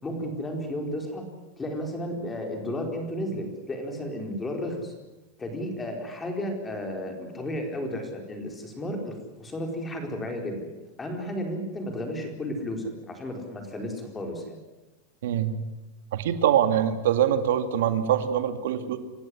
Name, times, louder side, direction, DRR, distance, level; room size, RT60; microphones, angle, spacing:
voice 1, 0.0-1.2 1.6-4.9 5.4-10.6 11.0-14.6, left 1 dB, 10° left, 3 dB, 4.4 m, -33 dB
voice 2, 15.2-15.5 16.1-19.0, right 10 dB, 80° right, 9 dB, 2.3 m, -24 dB
28.0 x 15.0 x 9.9 m, 1.1 s
supercardioid pair, 160°, 0 cm